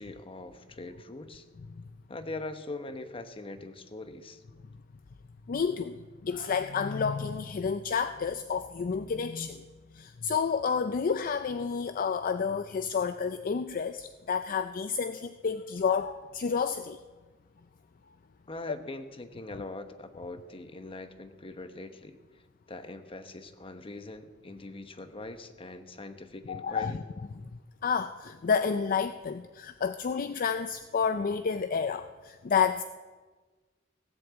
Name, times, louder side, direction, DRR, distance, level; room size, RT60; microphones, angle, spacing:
voice 1, 0.0-1.5 2.1-4.4 18.5-22.2 22.7-27.0, left 2 dB, 30° left, 9 dB, 1.0 m, -42 dB
voice 2, 5.5-9.6 9.9-17.0 26.5-27.0 27.8-32.8, left 6 dB, 45° left, 11 dB, 0.4 m, -30 dB
17.0 x 7.8 x 8.1 m, 1.4 s
head